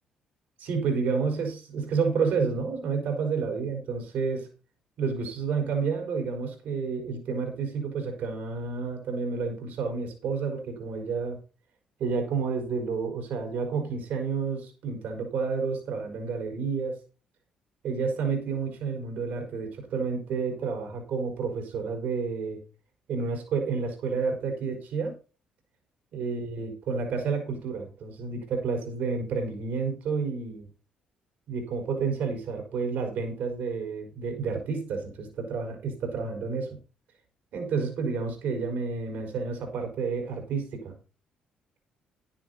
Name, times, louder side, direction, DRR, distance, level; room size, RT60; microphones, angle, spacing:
voice 1, 0.6-4.5 5.0-11.4 12.0-16.9 17.8-22.6 23.1-25.1 26.1-30.7 31.5-36.8 37.5-40.9, right 5 dB, 70° right, 4 dB, 4.4 m, -30 dB
10.5 x 10.0 x 4.0 m, 0.34 s
supercardioid pair, 55°, 3 cm